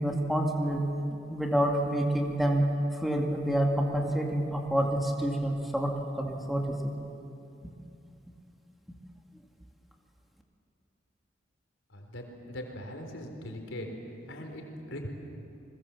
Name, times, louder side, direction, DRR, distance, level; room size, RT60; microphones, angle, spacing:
voice 1, 0.0-2.7 2.9-5.9 6.2-6.9 7.6-7.7, right 1 dB, ahead, 0 dB, 2.2 m, -28 dB
voice 2, 11.9-13.9 14.3-15.1, left 1 dB, 85° left, 3 dB, 4.0 m, -40 dB
29.5 x 21.0 x 7.4 m, 2.7 s
head